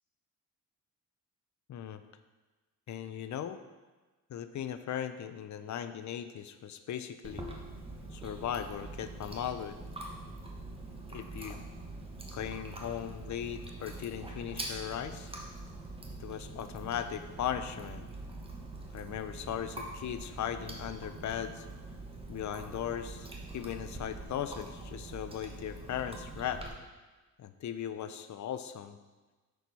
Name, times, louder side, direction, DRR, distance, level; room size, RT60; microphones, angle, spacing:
voice 1, 1.7-2.0 2.9-3.6 4.3-7.4 8.1-9.8 11.1-11.6 12.3-15.3 16.2-18.1 18.9-21.6 22.3-23.3 23.5-26.6 27.4-29.0, left 9 dB, 55° left, 11 dB, 0.6 m, -38 dB
Chewing mastication, 7.2-26.7, right 2 dB, 15° right, 1.1 m, -44 dB
sound 1, 8.5-25.7, equal, 15° left, 2.3 m, -61 dB
5.9 x 4.6 x 5.3 m, 1.3 s
cardioid pair, 80°, 34 cm